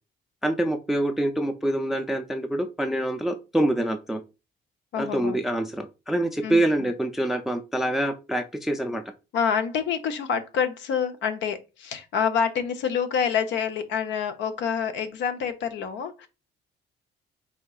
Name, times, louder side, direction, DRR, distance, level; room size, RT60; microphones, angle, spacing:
voice 1, 0.4-4.2 5.0-9.0, right 1 dB, ahead, 0.3 m, -26 dB
voice 2, 4.9-5.4 6.4-6.9 9.3-16.3, left 7 dB, 80° left, 0.6 m, -27 dB
4.3 x 2.8 x 2.3 m
cardioid pair, 105°, 18 cm